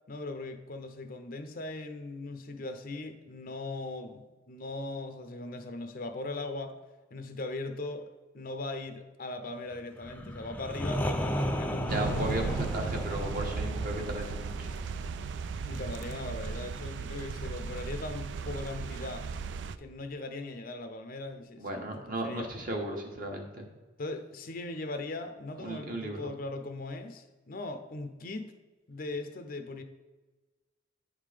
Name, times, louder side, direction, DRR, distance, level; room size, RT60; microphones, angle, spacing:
voice 1, 0.1-6.7 7.1-8.1 8.3-12.6 15.7-19.3 19.8-22.5 24.0-28.5 28.9-29.8, left 2 dB, 50° left, 7 dB, 0.6 m, -39 dB
sound 1, 10.0-15.8, equal, 10° left, 0.5 m, -35 dB
voice 2, 11.8-14.5 21.6-23.7 25.6-26.3, right 1 dB, 50° right, 2 dB, 1.2 m, -35 dB
sound 2, 11.9-19.8, right 5 dB, 70° right, 0.3 m, -36 dB
9.8 x 3.7 x 5.0 m, 1.2 s
head